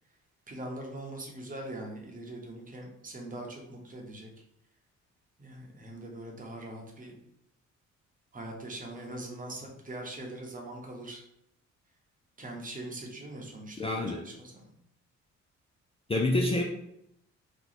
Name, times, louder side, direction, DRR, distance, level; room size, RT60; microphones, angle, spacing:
voice 1, 0.5-4.3 5.4-7.2 8.3-11.2 12.4-14.7, right 1 dB, 25° right, 0 dB, 1.0 m, -42 dB
voice 2, 13.8-14.2 16.1-16.6, left 2 dB, 20° left, 0 dB, 0.4 m, -27 dB
3.0 x 2.3 x 4.0 m, 0.75 s
cardioid pair, 90°, 30 cm